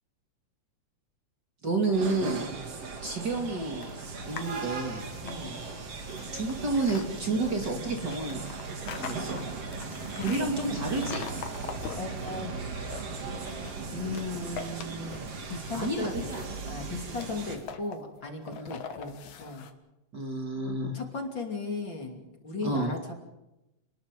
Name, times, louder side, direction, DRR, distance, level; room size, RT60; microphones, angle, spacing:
voice 1, 1.6-2.4 3.0-3.9 4.3-5.0 6.3-8.4 9.0-9.4 10.2-11.3 15.7-16.4 18.5-18.8 20.1-20.9 22.6-22.9, right 3 dB, 35° right, 2 dB, 2.9 m, -30 dB
sound 1, 1.9-17.6, right 4 dB, 55° right, 3.6 m, -38 dB
sound 2, 3.8-4.6 5.0-7.1 7.9-10.4 10.9-12.3 12.7-13.8 14.1-15.4 15.7-19.7, left 7 dB, 80° left, 2.9 m, -42 dB
voice 2, 5.2-5.6 9.8-10.9 11.9-12.5 13.9-16.3 16.7-19.7 20.9-23.1, left 3 dB, 40° left, 2 dB, 3.4 m, -36 dB
29.0 x 20.5 x 5.3 m, 0.95 s
omnidirectional pair, 3.4 m